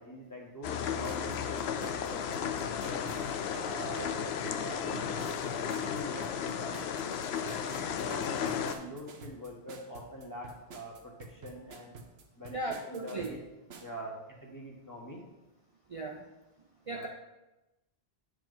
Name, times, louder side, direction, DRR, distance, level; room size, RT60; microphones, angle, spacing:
voice 1, 0.0-3.0 3.6-4.2 4.5-5.0 5.4-6.9 7.4-12.0 12.4-13.4 13.8-15.2 16.9-17.1, equal, 20° left, -2 dB, 1.3 m, -44 dB
sound 1, 0.6-8.7, left 7 dB, 85° left, 0.8 m, -34 dB
sound 2, 1.0-14.0, right 4 dB, 85° right, 1.1 m, -49 dB
voice 2, 12.5-13.3 15.9-16.2 16.9-17.1, right 2 dB, 35° right, -1 dB, 0.7 m, -36 dB
8.9 x 4.8 x 4.0 m, 0.99 s
omnidirectional pair, 1.0 m